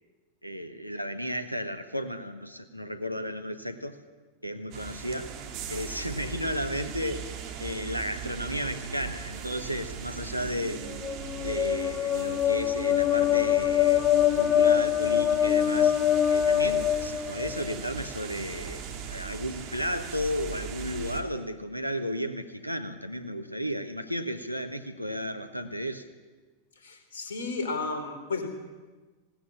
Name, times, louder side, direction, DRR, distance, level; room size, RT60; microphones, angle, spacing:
voice 1, 0.4-4.0 4.4-5.3 5.7-7.3 7.6-10.9 11.4-15.9 16.3-26.0, equal, 90° right, 8 dB, 1.5 m, -33 dB
sound 1, 4.7-21.2, right 6 dB, 40° right, 2.8 m, -39 dB
sound 2, 10.9-17.8, left 10 dB, 25° left, 0.8 m, -24 dB
voice 2, 26.8-28.5, left 3 dB, 60° left, 6 dB, 4.0 m, -33 dB
20.0 x 18.0 x 8.6 m, 1.3 s
figure-of-eight pair, 90°, 0 cm